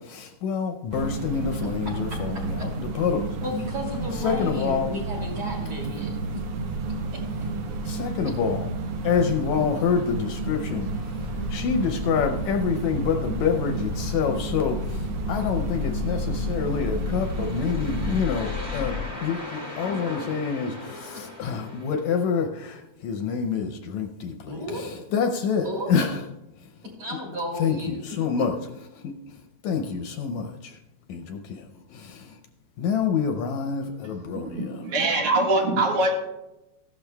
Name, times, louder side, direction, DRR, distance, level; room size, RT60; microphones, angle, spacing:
voice 1, 0.0-3.3 4.2-4.9 7.9-8.7 9.0-26.2 26.6-26.7 27.6-28.5 28.9-30.8 31.1-32.4 32.8-34.8, left 6 dB, 75° left, 4 dB, 1.8 m, -27 dB
sound 1, 0.9-18.2, right 3 dB, 85° right, 1.2 m, -31 dB
voice 2, 1.8-2.7 3.4-6.2 7.1-7.2 24.5-24.9 25.6-25.9 27.0-28.0 28.4-28.5, left 1 dB, 40° right, -2 dB, 3.3 m, -33 dB
sound 2, 10.3-19.1, left 4 dB, 5° left, 1.4 m, -34 dB
sound 3, 16.7-22.2, left 1 dB, 10° right, 1.4 m, -38 dB
voice 3, 34.2-36.1, right 2 dB, 70° right, -1 dB, 3.1 m, -23 dB
15.5 x 12.0 x 2.2 m, 0.96 s
omnidirectional pair, 3.6 m